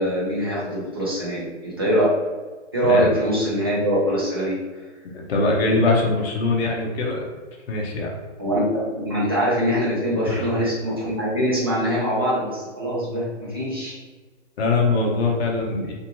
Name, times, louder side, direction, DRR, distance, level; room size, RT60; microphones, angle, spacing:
voice 1, 0.0-2.1 2.7-4.6 8.4-14.0, equal, 20° right, -8 dB, 0.4 m, -23 dB
voice 2, 5.1-7.3 7.7-8.2 10.3-10.5 14.6-15.9, left 3 dB, 55° left, -1 dB, 0.7 m, -22 dB
2.6 x 2.5 x 2.9 m, 1.3 s
hypercardioid pair, 170°, 36 cm